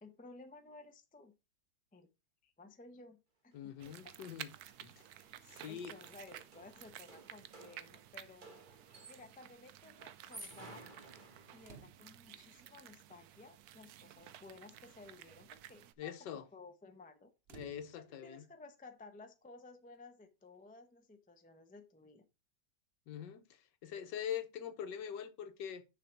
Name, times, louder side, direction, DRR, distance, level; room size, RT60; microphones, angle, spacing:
voice 1, 0.0-1.3 1.9-2.1 2.4-3.2 3.4-3.6 3.8-4.2 5.1-10.9 11.5-17.3 17.9-22.2, left 3 dB, 10° left, 0.4 m, -56 dB
voice 2, 3.5-4.5 4.8-5.0 5.4-5.9 16.0-16.5 17.5-18.5 23.1-25.8, left 9 dB, 75° left, 1.5 m, -43 dB
sound 1, 3.5-3.6 3.8-9.5 10.1-11.9, right 2 dB, 30° right, 1.5 m, -56 dB
sound 2, 3.8-15.9, right 12 dB, 70° right, 1.0 m, -54 dB
sound 3, 11.6-12.4 13.4-13.5 13.9-14.2 14.5-14.8 17.5-18.4 19.9-20.0, right 8 dB, 85° right, 0.5 m, -58 dB
6.6 x 5.7 x 4.5 m
omnidirectional pair, 1.9 m